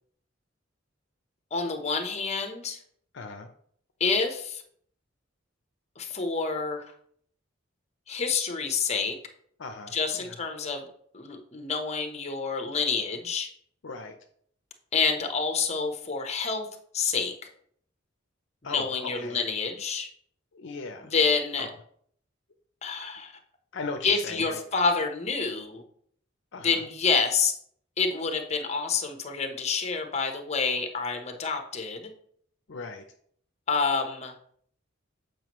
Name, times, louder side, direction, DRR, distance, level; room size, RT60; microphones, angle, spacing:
voice 1, 1.5-2.8 4.0-4.6 6.0-6.8 8.1-9.2 9.9-10.8 11.1-13.5 14.9-16.7 16.9-17.3 18.6-20.1 21.0-21.7 22.8-23.3 24.0-25.8 26.6-27.5 28.0-32.1 33.7-34.3, left 5 dB, 35° left, 5 dB, 0.9 m, -28 dB
voice 2, 3.1-3.5 9.6-10.3 13.8-14.2 18.6-19.4 20.5-21.1 21.6-21.7 23.7-24.6 26.5-26.8 32.7-33.0, left 3 dB, 65° left, 5 dB, 0.6 m, -38 dB
7.5 x 5.1 x 3.0 m, 0.62 s
head